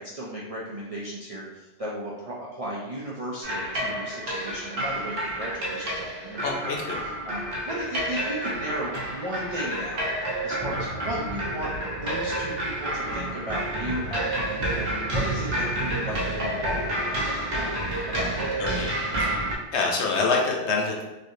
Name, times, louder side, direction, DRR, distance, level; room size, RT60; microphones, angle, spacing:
voice 1, 0.0-6.6 6.9-18.5, right 1 dB, 55° right, -7 dB, 0.4 m, -35 dB
sound 1, 3.4-19.5, right 1 dB, 80° right, 1.1 m, -29 dB
voice 2, 6.4-7.0 18.6-18.9 19.2-19.4 19.7-21.0, left 4 dB, 70° left, -1 dB, 0.9 m, -26 dB
3.2 x 2.7 x 2.6 m, 1.1 s
omnidirectional pair, 1.2 m